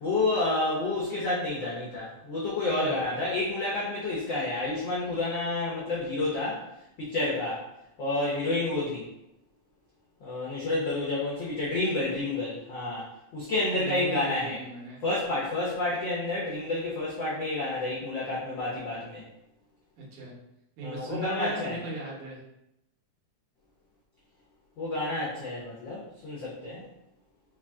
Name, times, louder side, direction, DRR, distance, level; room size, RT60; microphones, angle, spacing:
voice 1, 0.0-6.6 7.0-7.6 8.0-9.1 10.2-13.1 13.3-14.6 15.0-19.2 20.8-21.8 24.8-26.8, left 2 dB, 90° left, -6 dB, 1.0 m, -29 dB
voice 2, 2.6-3.0 13.7-15.0 20.0-20.3 20.8-22.4, right 2 dB, 75° right, -4 dB, 2.6 m, -37 dB
5.4 x 2.5 x 3.5 m, 0.84 s
omnidirectional pair, 3.5 m